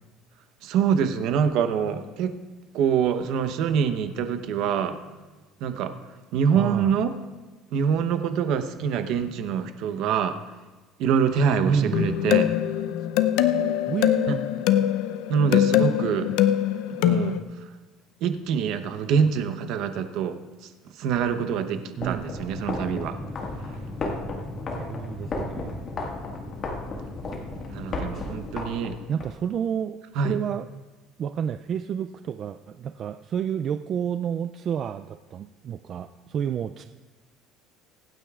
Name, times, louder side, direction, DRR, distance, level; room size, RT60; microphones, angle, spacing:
voice 1, 0.6-2.4 2.7-5.0 5.6-5.9 6.3-7.1 7.7-10.4 11.0-12.5 14.3-14.4 15.3-16.3 16.9-17.4 18.2-23.2 27.7-29.0 30.1-30.4, right 7 dB, 60° right, 9 dB, 0.9 m, -25 dB
voice 2, 6.5-6.9 11.6-12.1 13.9-14.4 22.0-22.2 24.7-25.8 29.1-30.0 30.2-30.6 31.2-36.8, right 8 dB, 35° right, 9 dB, 0.3 m, -29 dB
sound 1, 11.9-17.4, left 12 dB, 75° left, 0.6 m, -23 dB
sound 2, 21.9-29.3, left 2 dB, 35° left, 1.7 m, -33 dB
24.5 x 9.1 x 2.4 m, 1.2 s
cardioid pair, 150°, 0 cm